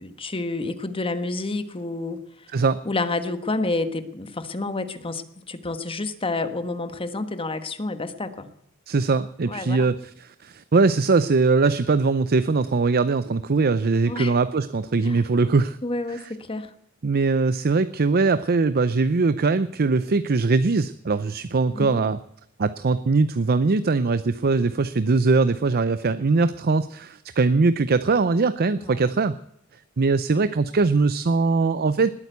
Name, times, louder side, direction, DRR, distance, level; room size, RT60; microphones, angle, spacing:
voice 1, 0.0-2.5 2.8-8.5 9.4-9.9 14.0-14.4 15.0-15.2 15.8-16.7 21.7-22.0 28.8-29.1, left 2 dB, 25° left, 10 dB, 1.3 m, -29 dB
voice 2, 8.9-10.0 10.2-15.8 17.0-22.2 22.6-29.4 30.0-32.1, right 4 dB, 45° right, 14 dB, 0.6 m, -21 dB
20.0 x 9.0 x 8.1 m, 0.75 s
head